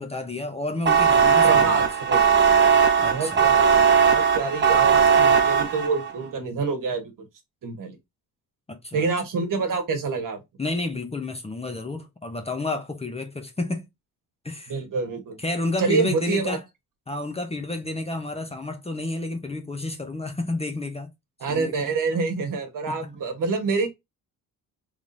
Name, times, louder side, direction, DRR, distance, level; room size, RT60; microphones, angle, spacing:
voice 1, 0.0-1.9 3.0-3.4 8.7-9.1 10.6-13.9 14.4-14.7 15.4-16.6 17.1-21.1 21.5-21.7 22.9-23.0, left 2 dB, 15° left, 0.7 m, -30 dB
sound 1, 0.8-6.1, right 6 dB, 30° right, 0.7 m, -18 dB
voice 2, 1.4-2.2 3.0-3.8 4.1-7.3 7.6-8.0 8.9-10.4 14.7-15.4 15.8-16.6 21.4-23.9, right 4 dB, 55° right, 1.2 m, -27 dB
3.6 x 3.2 x 2.6 m
cardioid pair, 95°, 37 cm